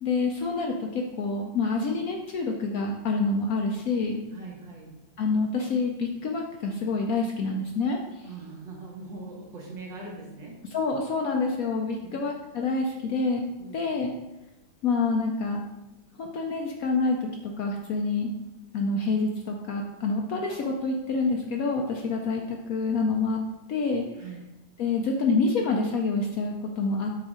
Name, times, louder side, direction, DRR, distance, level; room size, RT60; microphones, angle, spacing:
voice 1, 0.0-4.2 5.2-8.2 10.6-13.4 13.7-14.2 14.8-15.7 16.2-18.3 18.7-23.4 23.7-24.0 24.8-27.1, left 3 dB, 70° left, 1 dB, 0.9 m, -27 dB
voice 2, 4.3-4.9 8.2-10.5 12.0-12.3 13.6-13.9 20.2-20.3 24.2-24.4, right 3 dB, 75° right, -2 dB, 2.3 m, -41 dB
6.2 x 3.8 x 4.9 m, 1.0 s
omnidirectional pair, 2.0 m